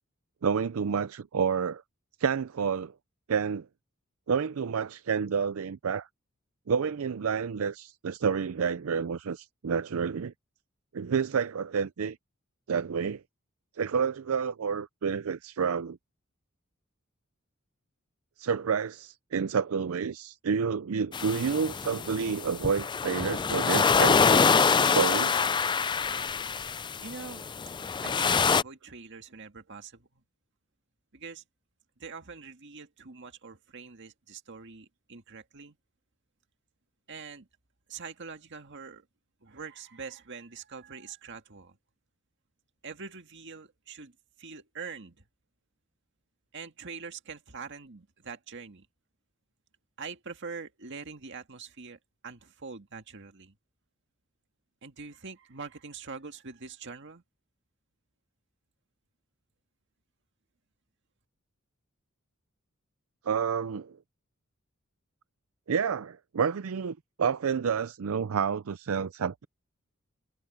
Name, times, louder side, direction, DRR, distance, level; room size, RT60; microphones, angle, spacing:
voice 1, 0.4-1.8 2.2-2.9 3.3-3.6 4.3-6.1 6.7-10.3 10.9-12.2 12.7-13.2 13.8-16.0 18.4-25.4 63.3-64.0 65.7-69.4, right 6 dB, 75° right, 0.5 m, -29 dB
sound 1, 21.1-28.6, left 5 dB, 20° left, 0.4 m, -25 dB
voice 2, 27.0-27.5 28.0-30.2 31.1-31.4 32.0-35.8 37.1-37.5 37.9-39.1 39.4-41.8 42.8-44.1 44.4-45.2 46.5-48.9 50.0-53.5 54.8-57.2, right 5 dB, 60° right, 1.9 m, -44 dB
head